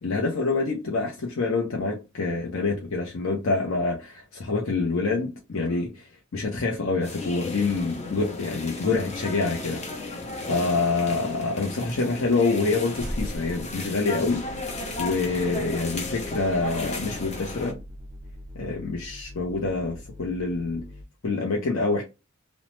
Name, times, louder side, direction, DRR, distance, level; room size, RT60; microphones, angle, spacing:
voice 1, 0.0-14.7 15.0-17.8 18.5-20.9 21.2-22.0, left 3 dB, 70° left, 0.6 m, -26 dB
sound 1, 7.0-17.7, left 2 dB, 35° left, 0.7 m, -35 dB
sound 2, 8.8-11.4 11.8-11.9 12.2-12.3 12.5-12.7 12.9-14.6, equal, 5° right, 1.0 m, -39 dB
sound 3, 14.2-21.0, equal, 30° right, 0.4 m, -43 dB
3.0 x 2.0 x 3.0 m
head